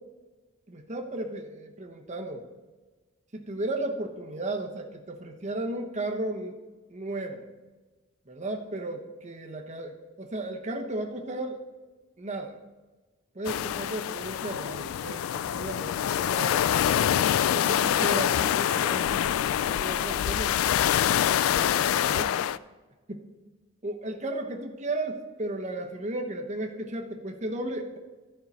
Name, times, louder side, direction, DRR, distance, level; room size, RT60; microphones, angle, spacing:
voice 1, 0.7-2.4 3.3-6.6 6.9-7.5 8.3-11.6 12.2-12.6 13.3-16.7 17.5-20.7 21.0-21.2 21.5-22.4 23.1-23.2 23.8-28.0, right 2 dB, 35° right, 3 dB, 1.0 m, -35 dB
sound 1, 13.4-22.6, left 10 dB, 85° left, 0.3 m, -25 dB
14.5 x 5.6 x 4.2 m, 1.3 s
head